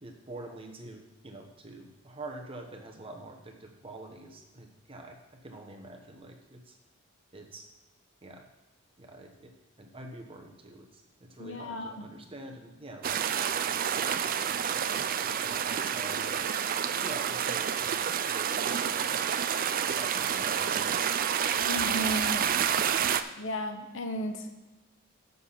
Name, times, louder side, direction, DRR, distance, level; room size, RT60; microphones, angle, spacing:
voice 1, 0.0-5.2 5.4-6.8 7.3-7.6 8.2-8.4 9.0-9.5 9.8-13.2 13.7-16.4 17.0-18.0 18.3-19.2 19.9-21.2 21.8-22.0 22.3-22.8, right 2 dB, 25° right, 2 dB, 1.1 m, -46 dB
voice 2, 11.4-12.1 21.7-22.4 23.4-24.4, equal, 65° left, 6 dB, 0.9 m, -34 dB
sound 1, 13.0-23.2, right 8 dB, 40° right, 0.4 m, -29 dB
7.9 x 6.7 x 5.6 m, 1.1 s
head